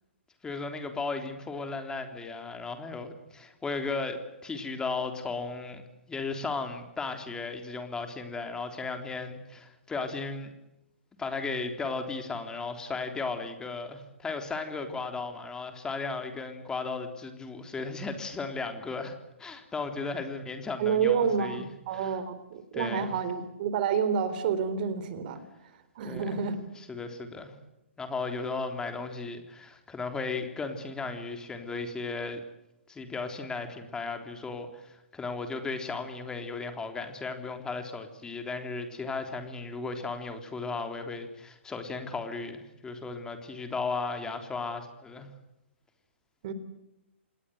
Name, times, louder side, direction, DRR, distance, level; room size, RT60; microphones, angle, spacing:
voice 1, 0.4-5.8 6.1-10.5 11.2-22.2 22.7-23.2 26.1-26.4 26.8-27.5 28.0-32.4 32.9-45.3, left 4 dB, 10° left, 6 dB, 3.6 m, -35 dB
voice 2, 20.8-25.4 26.0-26.6 46.4-46.5, right 7 dB, 45° right, 13 dB, 3.9 m, -29 dB
28.5 x 20.0 x 8.0 m, 0.88 s
hypercardioid pair, 130°, 7 cm